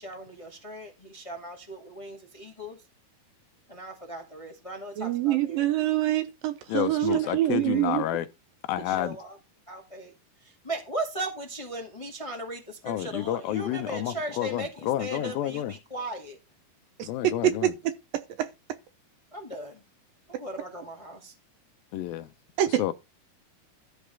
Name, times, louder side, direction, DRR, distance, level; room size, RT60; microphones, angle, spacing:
voice 1, 0.0-2.8 3.7-5.9 6.9-7.8 8.8-9.4 9.7-10.1 10.4-16.4 19.3-19.8 20.3-21.3, right 1 dB, 50° left, 0.4 m, -38 dB
voice 2, 5.0-8.0 17.0-17.1 17.4-17.7 18.1-18.5 22.6-22.9, right 14 dB, 75° right, 2.4 m, -25 dB
voice 3, 6.7-8.3 8.7-9.2 12.8-15.7 17.0-17.7 21.9-22.3 22.8-22.9, left 12 dB, 80° left, 2.3 m, -30 dB
13.0 x 4.9 x 5.6 m
omnidirectional pair, 4.5 m